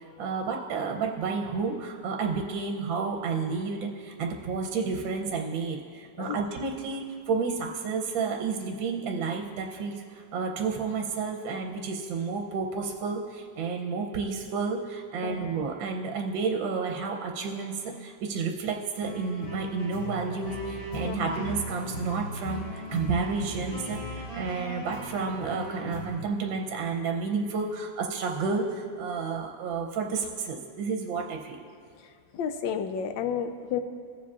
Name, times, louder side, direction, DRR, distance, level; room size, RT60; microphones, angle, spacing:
voice 1, 0.2-31.6, right 4 dB, 80° right, 2 dB, 1.4 m, -31 dB
sound 1, 19.0-26.1, equal, 45° left, 3.2 m, -37 dB
voice 2, 32.3-33.8, left 8 dB, 80° left, 8 dB, 1.2 m, -31 dB
18.0 x 7.2 x 2.4 m, 2.2 s
omnidirectional pair, 2.1 m